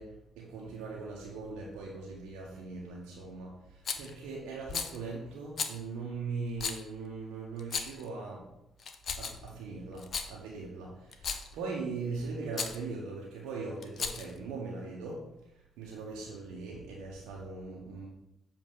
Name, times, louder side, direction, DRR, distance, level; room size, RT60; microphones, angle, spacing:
voice 1, 0.0-8.4 9.2-15.2 15.5-18.1, right 4 dB, 75° right, -3 dB, 0.8 m, -40 dB
Rattle, 3.8-4.1 4.7-5.0 5.6-5.8 6.6-6.8 7.6-8.0 8.8-9.5 10.0-10.3 11.1-11.5 12.5-12.8 13.8-14.4, left 5 dB, 55° left, 0.6 m, -35 dB
7.4 x 2.5 x 5.1 m, 0.88 s
hypercardioid pair, 45°, 0 cm